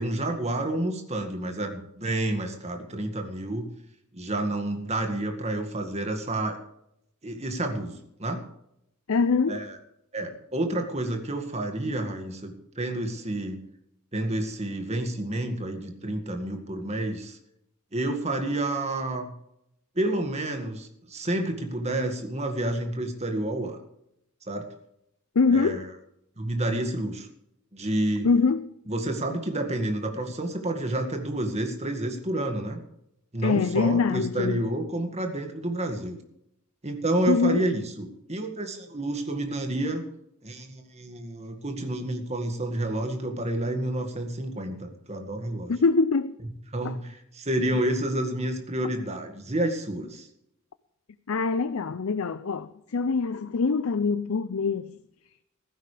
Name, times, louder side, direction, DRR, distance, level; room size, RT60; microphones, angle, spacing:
voice 1, 0.0-3.7 4.1-6.6 7.2-8.4 9.5-9.8 10.1-13.6 14.1-17.4 17.9-19.3 20.0-23.8 24.5-24.6 25.5-25.8 26.4-27.3 27.7-28.3 28.9-32.8 33.3-36.2 36.8-40.0 40.4-45.7 46.7-50.3, right 1 dB, 30° right, 2.0 m, -29 dB
voice 2, 9.1-9.6 25.4-25.8 28.2-28.7 33.4-34.6 37.3-37.7 45.7-46.3 46.8-47.0 51.3-54.9, left 4 dB, 65° left, 0.5 m, -24 dB
16.0 x 14.5 x 3.4 m
head